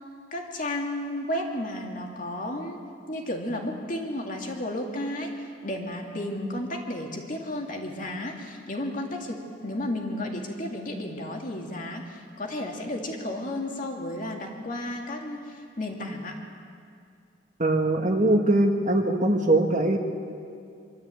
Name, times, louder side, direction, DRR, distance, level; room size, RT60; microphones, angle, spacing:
voice 1, 0.3-2.8 3.1-9.4 9.6-16.4, left 1 dB, 45° left, 1 dB, 2.4 m, -33 dB
voice 2, 17.6-20.0, right 1 dB, 40° right, 3 dB, 1.5 m, -22 dB
24.5 x 13.0 x 8.5 m, 2.4 s
head